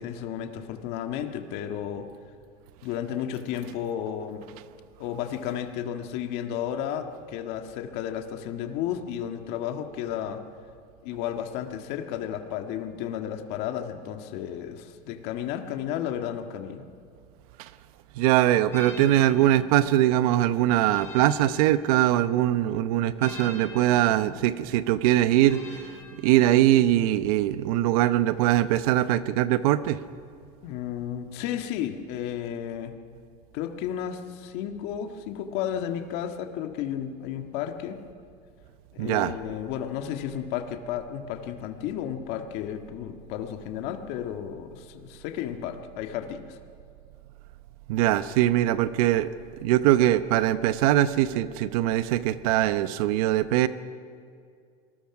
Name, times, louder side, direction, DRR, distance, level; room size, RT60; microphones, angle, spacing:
voice 1, 0.0-2.1 2.8-4.4 5.0-10.4 11.0-16.9 30.6-33.0 33.5-38.0 38.9-46.6, left 10 dB, 60° left, 5 dB, 1.7 m, -33 dB
voice 2, 18.1-25.9 26.2-30.0 39.0-39.3 47.9-49.3 49.6-53.7, right 13 dB, 80° right, 13 dB, 0.9 m, -22 dB
sound 1, 18.7-22.4 23.2-26.9, left 4 dB, 15° left, 4.4 m, -46 dB
27.0 x 19.5 x 6.0 m, 2.3 s
supercardioid pair, 140°, 19 cm